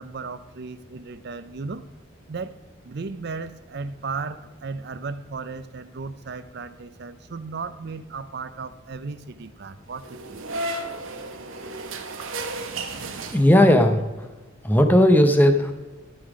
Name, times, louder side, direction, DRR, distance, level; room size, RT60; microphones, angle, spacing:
voice 1, 0.0-1.9 2.3-2.6 2.8-10.4, right 4 dB, 55° right, 13 dB, 0.5 m, -35 dB
sound 1, 10.0-13.9, right 2 dB, 80° right, 1.1 m, -33 dB
voice 2, 13.3-14.3 14.6-15.7, left 1 dB, 10° left, 6 dB, 0.8 m, -16 dB
13.5 x 5.7 x 4.9 m, 1.2 s
head